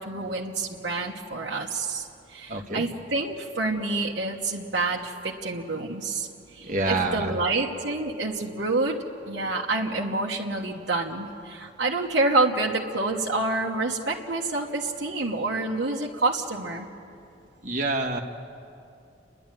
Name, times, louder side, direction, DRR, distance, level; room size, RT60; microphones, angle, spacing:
voice 1, 0.0-16.9, right 2 dB, 65° right, -2 dB, 1.2 m, -28 dB
voice 2, 2.5-2.8 6.6-7.3 17.6-18.2, right 2 dB, 40° right, 1 dB, 1.6 m, -27 dB
29.5 x 11.0 x 9.2 m, 2.6 s
head